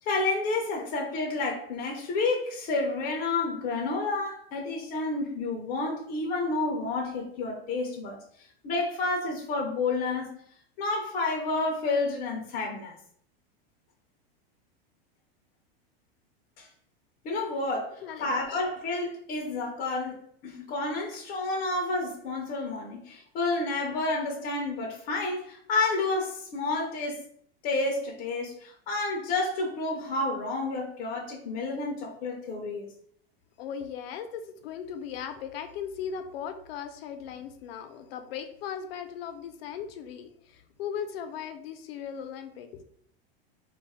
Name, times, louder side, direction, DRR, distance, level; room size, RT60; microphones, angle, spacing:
voice 1, 0.1-8.2 8.6-10.4 10.8-13.0 16.6-16.7 17.2-27.2 27.6-32.9, left 3 dB, 30° left, 1 dB, 0.5 m, -30 dB
voice 2, 33.6-42.7, left 8 dB, 75° left, 8 dB, 0.6 m, -38 dB
2.5 x 2.3 x 4.0 m, 0.64 s
supercardioid pair, 150°, 30 cm